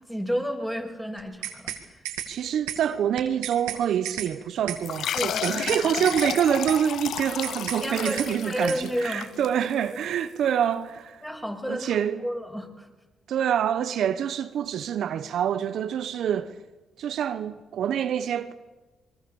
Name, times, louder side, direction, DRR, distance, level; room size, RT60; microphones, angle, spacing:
voice 1, 0.1-1.7 5.1-5.7 7.8-9.3 11.2-12.9, equal, 5° left, 5.9 m, -31 dB
sound 1, 1.2-2.3 2.7-2.8 3.2-3.8 4.0-4.3 4.7-4.8 5.2-5.8 6.0-6.3 6.7-6.8 7.2-7.8 8.0-8.3 8.7-8.8, right 12 dB, 90° right, 2.1 m, -33 dB
voice 2, 2.3-11.2 11.7-12.3 13.3-16.6 17.0-18.5, right 9 dB, 70° right, 1.0 m, -26 dB
sound 2, 4.8-10.0, left 9 dB, 70° left, 0.7 m, -32 dB
25.5 x 22.0 x 7.1 m
supercardioid pair, 55°, 0 cm